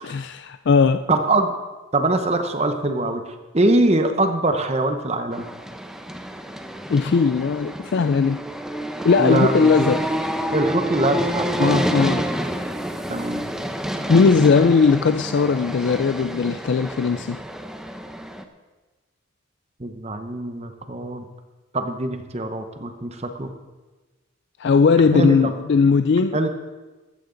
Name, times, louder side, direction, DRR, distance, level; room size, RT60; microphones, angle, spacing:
voice 1, 0.0-1.0 6.9-8.4 9.0-10.1 11.6-12.3 14.1-17.4 24.6-26.4, left 5 dB, 55° left, 0.3 m, -18 dB
voice 2, 1.1-1.5 1.9-3.2 3.5-5.4 9.2-9.9 10.5-11.9 13.1-13.5 19.8-21.3 21.7-23.5 25.1-25.5 26.3-26.5, right 2 dB, 30° right, 0.9 m, -23 dB
sound 1, 5.3-18.4, equal, ahead, 0.7 m, -28 dB
14.0 x 14.0 x 3.9 m
head